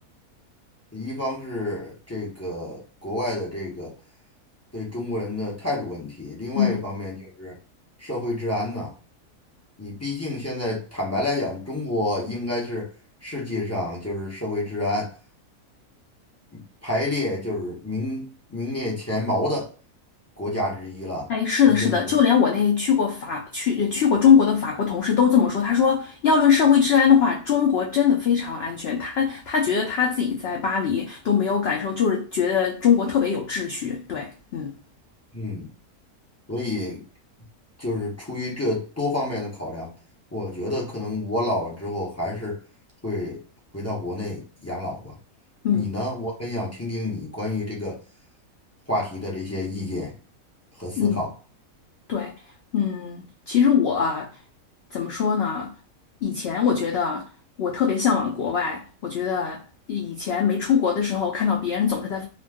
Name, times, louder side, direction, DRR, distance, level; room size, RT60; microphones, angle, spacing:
voice 1, 0.9-3.9 4.7-7.6 8.0-8.9 9.8-12.9 13.2-15.1 16.5-19.7 20.4-21.3 21.7-22.1 35.3-35.7 36.5-37.0 37.8-39.9 40.3-42.6 43.0-43.4 43.7-45.2 45.7-48.0 48.9-50.1 50.8-51.3, left 1 dB, 20° left, 0.5 m, -29 dB
voice 2, 21.3-34.7 45.6-46.0 51.0-51.3 52.1-52.3 52.7-54.3 54.9-55.7 56.2-57.3 57.6-59.6 59.9-62.2, left 7 dB, 80° left, 0.5 m, -22 dB
2.3 x 2.3 x 3.4 m
omnidirectional pair, 1.6 m